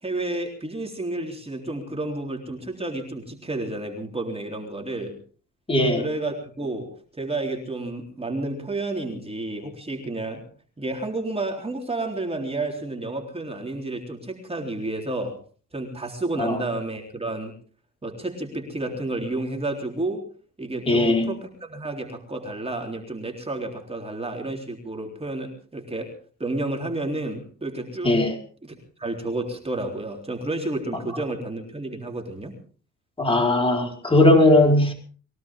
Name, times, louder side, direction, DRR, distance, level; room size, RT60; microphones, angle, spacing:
voice 1, 0.0-5.2 6.0-6.9 7.2-10.4 10.8-15.4 15.7-17.5 18.0-20.2 20.6-26.1 26.4-28.2 28.6-32.5, right 2 dB, 20° right, 2 dB, 3.7 m, -31 dB
voice 2, 5.7-6.0 16.4-16.6 20.9-21.3 28.0-28.3 33.2-34.9, left 2 dB, 20° left, 1 dB, 4.9 m, -18 dB
23.0 x 17.0 x 3.7 m, 0.42 s
cardioid pair, 90°, 30 cm